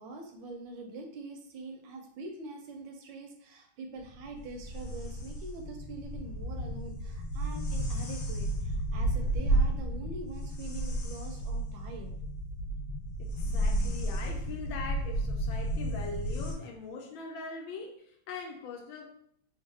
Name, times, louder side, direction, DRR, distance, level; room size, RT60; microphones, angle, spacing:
voice 1, 0.0-12.1, right 2 dB, 75° right, 3 dB, 1.2 m, -44 dB
sound 1, 4.0-16.5, right 1 dB, 65° left, 1.3 m, -32 dB
voice 2, 13.2-19.0, left 4 dB, 85° left, 2 dB, 1.4 m, -42 dB
3.6 x 2.4 x 3.2 m, 0.68 s
omnidirectional pair, 2.2 m